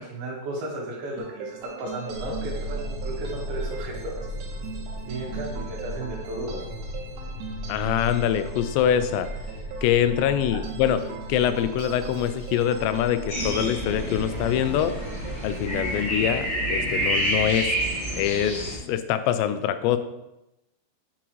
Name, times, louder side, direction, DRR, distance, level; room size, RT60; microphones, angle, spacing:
voice 1, 0.0-4.2 5.1-6.6 10.5-10.6, right 2 dB, 70° right, -2 dB, 2.9 m, -34 dB
sound 1, 1.2-16.0, right 6 dB, 85° right, 3.1 m, -40 dB
sound 2, 2.1-15.8, equal, 70° left, 2.5 m, -36 dB
voice 2, 7.7-9.3 9.8-11.0 11.3-14.9 15.4-17.7 18.2-18.6 18.9-20.0, left 10 dB, 85° left, 10 dB, 2.8 m, -24 dB
sound 3, 13.3-18.8, equal, 40° left, 3.8 m, -28 dB
8.7 x 6.0 x 3.1 m, 0.92 s
omnidirectional pair, 4.9 m